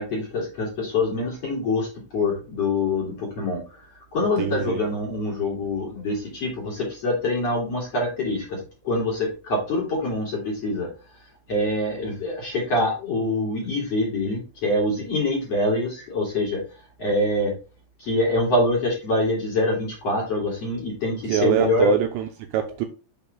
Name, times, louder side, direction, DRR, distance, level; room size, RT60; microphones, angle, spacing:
voice 1, 0.0-3.8 4.1-10.9 11.5-16.6 17.0-17.5 18.0-21.9, left 2 dB, 40° left, 2.6 m, -25 dB
voice 2, 4.4-4.8 21.3-22.9, right 10 dB, 80° right, 2.7 m, -24 dB
6.8 x 5.4 x 3.4 m
omnidirectional pair, 5.5 m